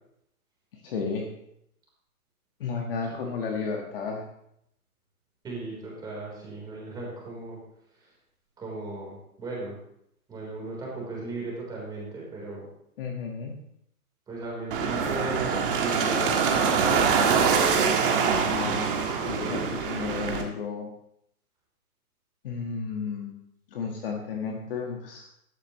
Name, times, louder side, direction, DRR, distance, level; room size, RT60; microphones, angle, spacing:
voice 1, 0.8-1.3 2.6-4.2 13.0-13.6 18.5-18.9 19.2-20.9 22.4-23.4 23.7-25.3, left 5 dB, 40° left, 1 dB, 1.6 m, -33 dB
voice 2, 5.4-7.6 8.6-9.8 10.3-12.7 14.3-17.8, right 2 dB, 10° right, -4 dB, 3.8 m, -37 dB
sound 1, 14.7-20.4, right 6 dB, 35° right, 1.8 m, -24 dB
14.5 x 12.0 x 3.1 m, 0.74 s
hypercardioid pair, 160°, 44 cm